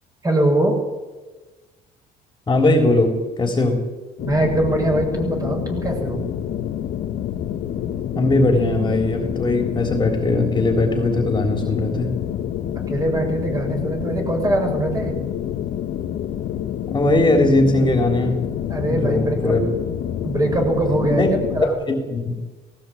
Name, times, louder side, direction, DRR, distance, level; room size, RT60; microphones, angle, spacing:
voice 1, 0.2-0.8 4.2-6.3 12.9-15.2 18.7-19.5 20.2-21.7, right 1 dB, 20° right, 2 dB, 7.8 m, -22 dB
voice 2, 2.5-3.9 8.2-12.2 16.9-18.5 18.8-19.6 21.0-21.3 21.6-22.3, left 2 dB, 25° left, 3 dB, 3.9 m, -19 dB
sound 1, 4.2-21.7, left 10 dB, 70° left, 2.0 m, -27 dB
19.5 x 17.5 x 8.8 m, 1.2 s
cardioid pair, 110°, 17 cm